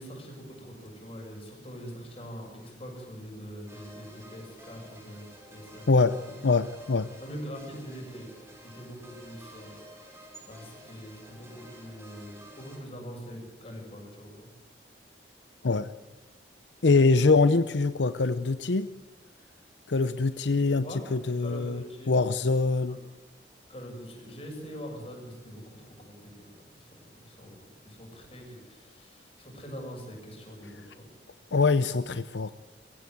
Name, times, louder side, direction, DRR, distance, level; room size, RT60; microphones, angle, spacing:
voice 1, 0.0-6.3 7.2-9.8 10.5-14.5 20.8-21.0 21.4-22.1 22.9-23.0 23.7-26.5 26.7-31.1, equal, 30° left, 1 dB, 6.9 m, -43 dB
sound 1, 3.7-12.8, right 1 dB, 15° right, 5.1 m, -51 dB
voice 2, 6.4-7.1 15.6-15.9 16.8-18.9 19.9-23.0 31.5-32.5, left 3 dB, 75° left, 12 dB, 0.7 m, -24 dB
23.0 x 16.0 x 9.5 m, 1.1 s
head